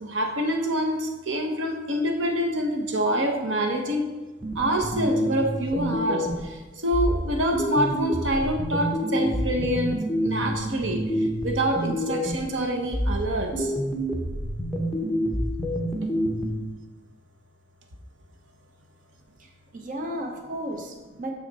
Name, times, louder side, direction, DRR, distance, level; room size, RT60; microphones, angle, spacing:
voice 1, 0.0-4.1 4.6-6.3 6.8-11.0 11.4-13.7, right 1 dB, 85° right, 4 dB, 0.9 m, -26 dB
sound 1, 4.4-6.5 6.9-12.5 12.9-16.5, equal, ahead, 0.8 m, -28 dB
voice 2, 19.4-21.3, equal, 45° right, 3 dB, 0.8 m, -34 dB
6.4 x 6.2 x 4.0 m, 1.2 s
head